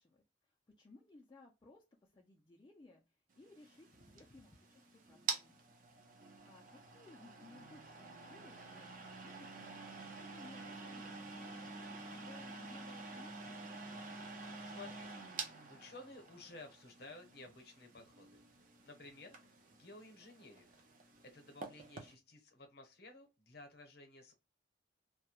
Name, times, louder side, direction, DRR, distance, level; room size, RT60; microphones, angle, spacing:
voice 1, 0.0-3.9 4.1-4.8 5.1-5.6 6.0-11.5 11.8-13.7, left 2 dB, 25° left, -1 dB, 0.3 m, -61 dB
sound 1, 3.4-22.1, right 4 dB, 40° right, 0.5 m, -48 dB
voice 2, 14.6-15.1 15.7-19.4 19.7-20.8 21.2-24.3, left 2 dB, 50° left, 4 dB, 0.8 m, -55 dB
2.3 x 2.0 x 2.8 m, 0.26 s
head